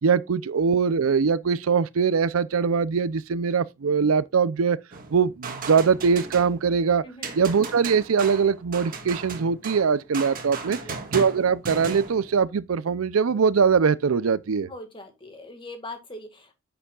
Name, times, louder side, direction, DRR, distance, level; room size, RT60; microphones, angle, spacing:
voice 1, 0.0-4.8 5.1-7.0 7.3-10.8 11.1-14.7, right 6 dB, 85° right, 0.5 m, -22 dB
sound 1, 4.9-6.8 7.2-12.4, right 4 dB, 45° right, 1.7 m, -36 dB
voice 2, 7.0-7.4 10.6-11.0 14.7-16.5, left 1 dB, 25° left, 1.8 m, -41 dB
10.0 x 6.9 x 2.3 m
head